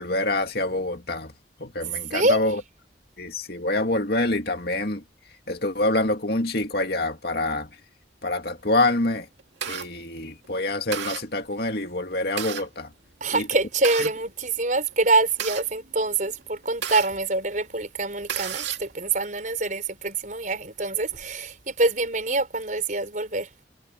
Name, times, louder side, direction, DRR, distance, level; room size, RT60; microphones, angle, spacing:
voice 1, 0.0-1.3 1.6-2.6 3.2-5.0 5.5-7.7 8.2-9.3 9.7-12.9 13.3-13.5, left 2 dB, 55° left, 2.3 m, -26 dB
voice 2, 2.1-2.4 13.2-23.5, right 3 dB, 45° right, 5.7 m, -25 dB
sound 1, 8.9-9.9 10.4-10.6 10.9-11.2 12.0-12.7 13.5-14.1 14.9-17.1 17.6-17.7 18.0-18.9, right 9 dB, 75° right, 2.4 m, -32 dB
head